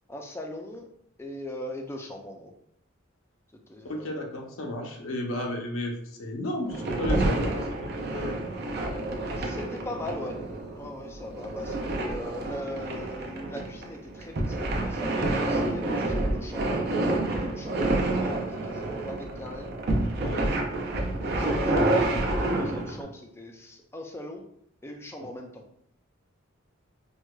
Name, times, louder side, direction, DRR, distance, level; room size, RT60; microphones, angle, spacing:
voice 1, 0.1-0.9 1.2-2.5 3.7-4.1 9.3-10.4 10.8-16.8 17.3-19.7 21.2-24.4 24.8-25.6, left 1 dB, 10° left, 3 dB, 0.3 m, -39 dB
voice 2, 3.8-8.4 20.2-20.5 25.2-25.3, left 1 dB, 75° left, 1 dB, 0.6 m, -33 dB
sound 1, 6.7-23.0, right 2 dB, 50° right, 0.5 m, -28 dB
4.5 x 2.2 x 2.2 m, 0.69 s
head